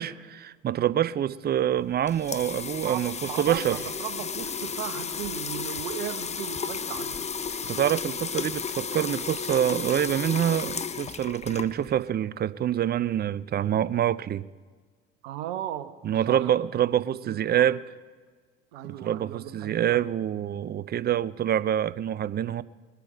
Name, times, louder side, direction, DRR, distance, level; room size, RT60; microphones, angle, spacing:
voice 1, 0.0-3.8 7.6-14.4 16.0-17.8 18.8-22.6, right 10 dB, 30° right, 0.5 m, -26 dB
sound 1, 1.8-12.1, left 6 dB, 20° left, 0.7 m, -33 dB
voice 2, 2.8-7.3 15.2-15.9 16.1-16.5 17.2-17.6 18.7-20.0, right 12 dB, 70° right, 1.2 m, -36 dB
22.0 x 8.3 x 5.1 m
hypercardioid pair, 65°, 31 cm